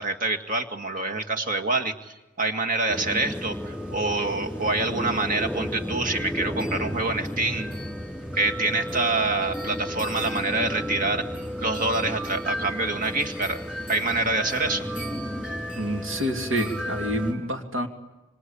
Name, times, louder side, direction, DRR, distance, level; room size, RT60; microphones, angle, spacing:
voice 1, 0.0-7.7 8.4-11.3 11.6-13.6 13.9-14.9, right 3 dB, 40° right, 5 dB, 2.1 m, -26 dB
sound 1, 2.9-17.3, equal, 5° right, 4.8 m, -33 dB
voice 2, 15.7-17.9, equal, 65° right, 4 dB, 2.8 m, -28 dB
26.0 x 26.0 x 8.6 m, 1.1 s
head